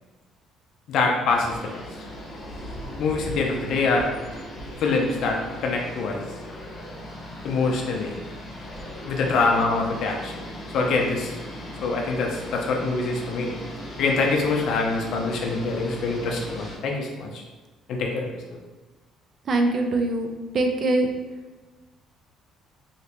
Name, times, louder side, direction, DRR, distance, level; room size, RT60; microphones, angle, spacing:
voice 1, 0.9-1.6 3.0-4.1 4.8-6.2 7.4-8.2 9.0-10.3 10.7-11.3 11.8-13.5 14.0-17.4 17.9-18.3, left 3 dB, 65° left, 0 dB, 0.4 m, -24 dB
sound 1, 1.3-16.7, equal, 25° left, 1.0 m, -38 dB
voice 2, 19.5-21.1, right 2 dB, 45° right, 4 dB, 0.4 m, -23 dB
3.0 x 2.8 x 2.9 m, 1.2 s
cardioid pair, 95°, 0 cm